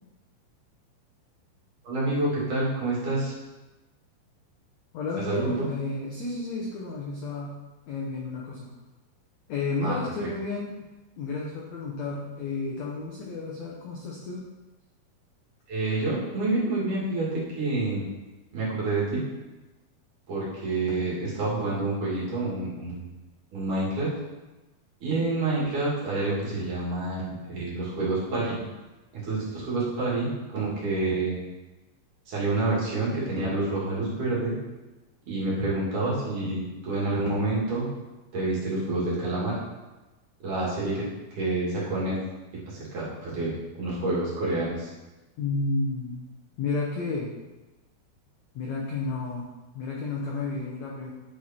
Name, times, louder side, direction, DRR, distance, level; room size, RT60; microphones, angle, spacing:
voice 1, 1.8-3.3 5.2-5.7 9.8-10.3 15.7-17.3 17.6-18.0 18.5-19.2 20.3-23.1 23.5-24.1 25.0-28.6 29.1-31.4 32.3-34.5 35.2-37.9 38.3-39.6 40.4-41.1 41.4-42.2 42.7-44.9, right 2 dB, 55° right, -7 dB, 3.7 m, -28 dB
voice 2, 4.9-7.5 7.9-8.7 9.5-10.7 11.2-14.4 45.4-46.3 46.6-47.3 48.5-49.5 49.7-51.1, left 3 dB, 75° left, -3 dB, 1.6 m, -31 dB
10.0 x 5.0 x 4.4 m, 1.1 s
omnidirectional pair, 4.6 m